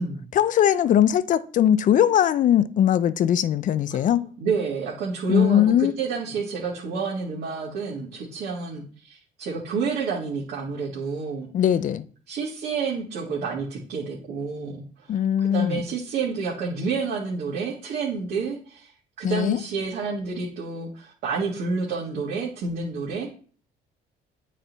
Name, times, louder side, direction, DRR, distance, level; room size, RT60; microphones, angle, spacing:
voice 1, 0.3-4.3 5.3-5.9 11.5-12.0 15.1-15.8 19.2-19.6, left 10 dB, 50° left, 0.5 m, -20 dB
voice 2, 4.1-11.5 12.3-18.9 19.2-23.3, right 5 dB, 70° right, 1.9 m, -29 dB
9.0 x 4.2 x 4.0 m
cardioid pair, 110°, 17 cm